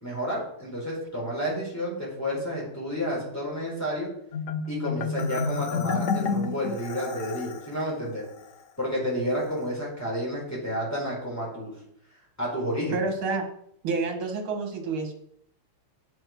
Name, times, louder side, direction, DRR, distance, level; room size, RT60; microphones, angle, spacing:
voice 1, 0.0-4.1 4.7-8.2 8.8-11.7 12.4-13.0, equal, 5° left, -5 dB, 4.4 m, -30 dB
Marimba xylophone, 4.3-7.7, left 5 dB, 75° left, 0.7 m, -29 dB
voice 2, 12.9-13.5 13.8-15.1, right 4 dB, 70° right, 3 dB, 2.6 m, -28 dB
9.0 x 6.3 x 6.1 m, 0.70 s
omnidirectional pair, 2.4 m